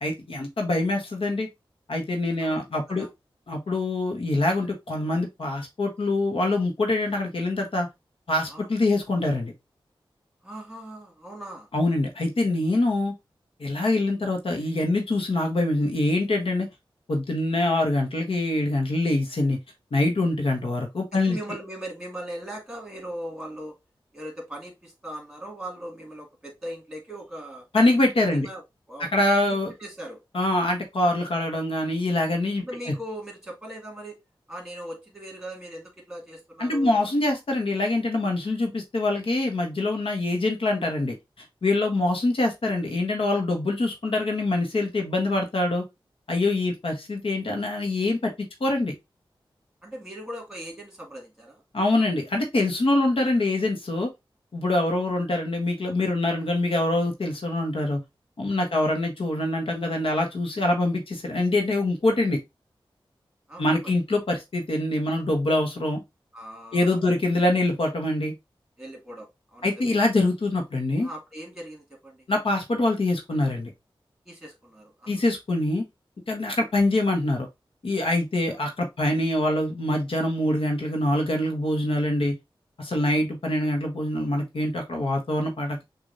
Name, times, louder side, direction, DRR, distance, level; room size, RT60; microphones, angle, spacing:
voice 1, 0.0-1.5 1.9-3.1 3.5-7.9 8.3-9.5 11.7-13.1 13.6-16.7 17.1-19.6 19.9-21.4 27.7-28.5 29.1-29.7 30.3-32.9 36.6-41.1 41.6-45.8 46.3-48.3 48.6-48.9 51.7-54.1 54.5-58.0 58.4-62.4 63.6-66.0 66.7-68.3 69.6-71.1 72.3-73.7 75.1-75.8 76.3-77.5 77.8-82.3 82.8-85.8, left 2 dB, 75° left, 1.2 m, -24 dB
voice 2, 2.4-3.1 8.5-8.7 10.4-11.7 21.1-23.8 24.1-27.6 28.3-28.6 28.9-29.1 29.4-30.2 32.6-34.2 34.5-37.1 41.9-42.0 49.8-51.6 54.8-54.9 58.7-58.8 63.5-63.9 66.3-67.2 67.5-67.6 68.8-70.0 71.0-72.3 74.3-75.1, right 1 dB, 5° right, 2.3 m, -39 dB
6.3 x 2.7 x 2.6 m
wide cardioid pair, 80°, 9 cm